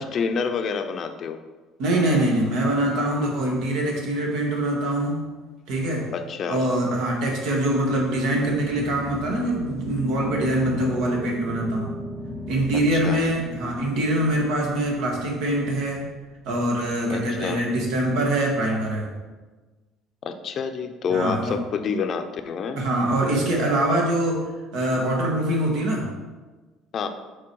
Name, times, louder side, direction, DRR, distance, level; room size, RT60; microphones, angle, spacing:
voice 1, 0.0-1.4 6.1-6.6 12.9-13.2 17.1-17.6 20.2-22.8 26.9-27.1, left 5 dB, 40° left, 7 dB, 0.5 m, -28 dB
voice 2, 1.8-5.2 5.7-6.1 6.5-11.9 12.5-16.1 16.4-19.1 21.1-21.5 22.8-24.4 24.7-26.1, right 1 dB, 75° right, -1 dB, 1.6 m, -24 dB
sound 1, 7.7-15.5, left 1 dB, 5° left, 0.8 m, -36 dB
6.0 x 4.0 x 4.6 m, 1.3 s
cardioid pair, 140°, 0 cm